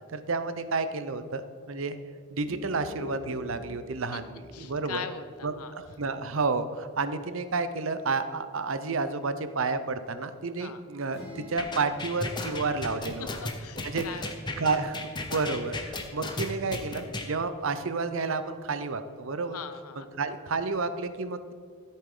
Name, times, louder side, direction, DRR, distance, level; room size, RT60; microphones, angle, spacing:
voice 1, 0.1-1.4 1.7-2.0 2.3-5.0 5.4-13.3 13.8-14.0 14.6-19.6 20.0-21.5, right 4 dB, 60° right, 11 dB, 0.7 m, -31 dB
sound 1, 2.3-7.1, left 1 dB, 5° right, 1.8 m, -46 dB
voice 2, 4.5-5.7 10.6-10.8 13.1-14.6 19.5-20.1, left 6 dB, 85° left, 10 dB, 0.8 m, -41 dB
sound 2, 11.1-14.9, left 2 dB, 45° left, 2.4 m, -50 dB
sound 3, 11.6-17.3, left 2 dB, 20° left, 0.9 m, -34 dB
14.0 x 8.4 x 3.8 m, 2.2 s
head